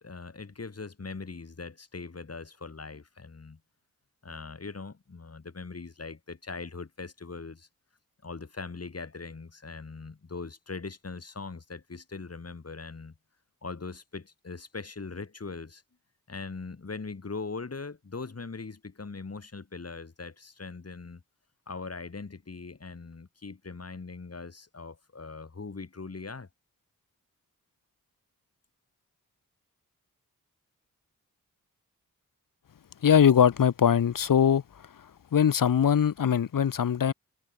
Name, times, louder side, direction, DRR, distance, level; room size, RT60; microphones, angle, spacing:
voice 1, 0.0-3.6 4.2-7.7 8.2-13.1 13.6-15.8 16.3-21.2 21.7-26.5, left 4 dB, 45° left, 6.1 m, -41 dB
voice 2, 33.0-34.6 35.3-37.1, left 8 dB, 70° left, 1.3 m, -21 dB
cardioid pair, 65°, 34 cm